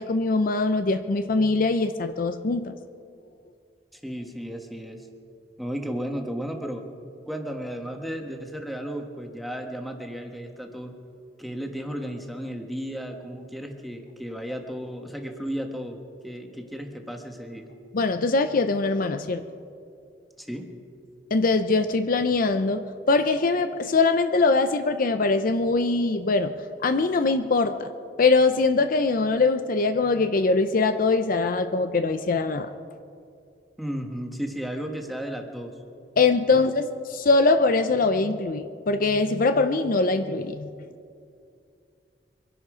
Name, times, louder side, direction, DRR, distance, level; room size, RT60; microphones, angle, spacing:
voice 1, 0.0-2.7 17.9-19.4 21.3-26.5 26.8-27.9 28.2-32.7 36.2-40.7, left 3 dB, 50° left, 9 dB, 0.5 m, -22 dB
voice 2, 3.9-5.1 5.6-6.8 7.3-10.9 11.4-16.0 16.2-17.7 20.4-20.7 33.8-35.7 36.5-36.6 40.9-41.0, equal, ahead, 3 dB, 1.4 m, -34 dB
24.0 x 11.0 x 5.0 m, 2.5 s
head